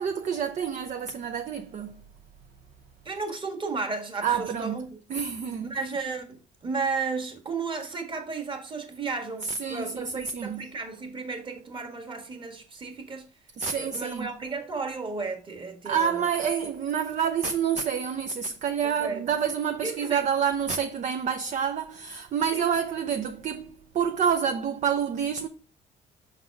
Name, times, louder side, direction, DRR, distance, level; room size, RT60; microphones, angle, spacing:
voice 1, 0.0-2.0 4.2-4.8 5.1-5.8 9.5-10.6 13.6-14.3 15.8-25.5, right 7 dB, 45° right, 0.6 m, -28 dB
voice 2, 3.0-5.0 5.6-13.3 13.7-16.2 18.8-19.2 19.8-20.2 22.5-22.7, right 4 dB, 30° right, 1.6 m, -34 dB
6.1 x 4.1 x 4.6 m
cardioid pair, 110°, 17 cm